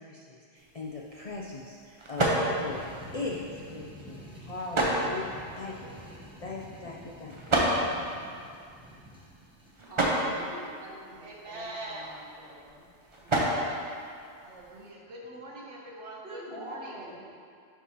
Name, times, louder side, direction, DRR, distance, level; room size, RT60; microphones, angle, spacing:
voice 1, 0.0-2.9 3.1-7.4, left 3 dB, 65° left, -2 dB, 0.3 m, -40 dB
sound 1, 0.5-14.9, right 1 dB, 30° right, 0.7 m, -33 dB
sound 2, 2.4-9.8, equal, 5° right, 0.9 m, -48 dB
voice 2, 9.8-11.2 11.4-12.9 16.2-17.1, equal, 45° right, -8 dB, 2.0 m, -45 dB
voice 3, 11.2-12.2 13.0-13.9 14.4-17.1, right 2 dB, 65° right, -2 dB, 1.1 m, -43 dB
11.0 x 4.7 x 2.8 m, 2.3 s
omnidirectional pair, 1.3 m